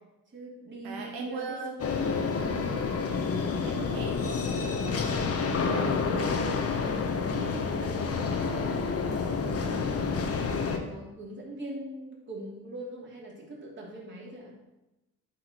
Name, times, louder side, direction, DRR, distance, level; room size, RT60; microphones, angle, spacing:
voice 1, 0.3-2.5 4.9-5.4 6.0-7.0 7.3-14.5, right 1 dB, 35° right, -4 dB, 3.1 m, -42 dB
voice 2, 0.8-1.7 2.4-2.9 3.6-6.4, right 4 dB, 90° right, 1 dB, 1.2 m, -40 dB
sound 1, 1.8-10.8, left 5 dB, 45° left, 1.1 m, -29 dB
11.0 x 4.7 x 4.6 m, 0.99 s
cardioid pair, 95°, 34 cm